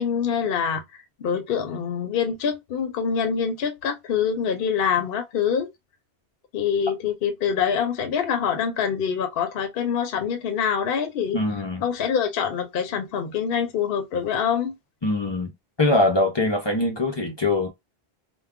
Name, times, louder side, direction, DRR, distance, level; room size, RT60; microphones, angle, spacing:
voice 1, 0.0-5.7 6.5-11.4 11.8-14.7, left 7 dB, 65° left, 0.7 m, -25 dB
voice 2, 11.3-11.8 15.0-15.5 15.8-17.7, left 2 dB, 40° left, 0.4 m, -22 dB
2.2 x 2.1 x 3.5 m
omnidirectional pair, 1.1 m